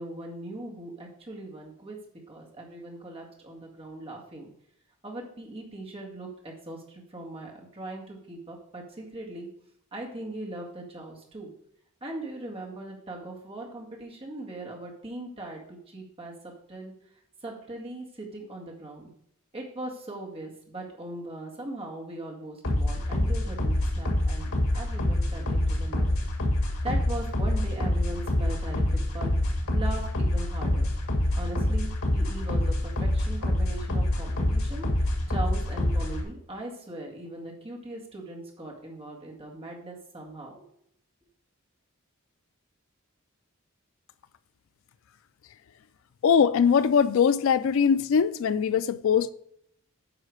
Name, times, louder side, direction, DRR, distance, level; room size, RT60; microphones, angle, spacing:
voice 1, 0.0-2.0 2.3-4.5 5.0-9.5 9.9-11.5 12.0-16.9 17.4-19.1 19.5-26.1 26.8-30.9 31.4-40.5, right 2 dB, 25° right, 1.9 m, -40 dB
sound 1, 22.6-36.2, left 1 dB, 80° left, 2.0 m, -26 dB
voice 2, 46.2-49.3, left 7 dB, 65° left, 0.3 m, -21 dB
9.4 x 5.6 x 4.7 m
head